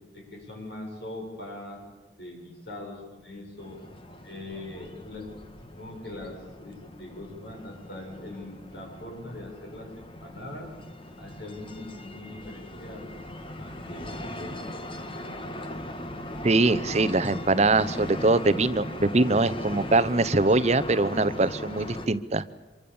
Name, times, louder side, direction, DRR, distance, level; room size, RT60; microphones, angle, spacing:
voice 1, 0.1-1.8 2.2-3.8 4.2-5.3 5.8-10.7 11.2-14.1 14.4-15.3, left 2 dB, 65° left, 1 dB, 7.7 m, -42 dB
sound 1, 3.6-22.1, left 1 dB, 30° left, 1.5 m, -39 dB
voice 2, 16.4-22.4, right 2 dB, 35° right, 14 dB, 0.8 m, -23 dB
26.0 x 23.5 x 7.2 m, 1.2 s
head